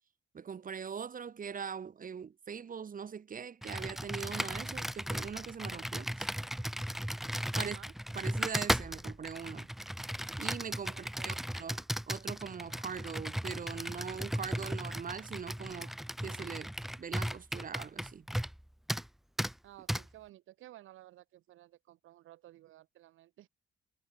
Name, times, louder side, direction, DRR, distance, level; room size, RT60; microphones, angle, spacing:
voice 1, 0.3-6.3 7.6-7.8 8.1-9.7 10.4-15.9 16.2-16.7 17.0-18.3, right 7 dB, 45° right, 2.0 m, -42 dB
Computer keyboard, 3.6-18.6 18.9-19.1 19.4-19.5 19.9-20.0, equal, ahead, 0.7 m, -36 dB
voice 2, 7.6-7.9 10.9-11.5 19.6-23.5, right 14 dB, 85° right, 5.2 m, -55 dB
cardioid pair, 90°, 20 cm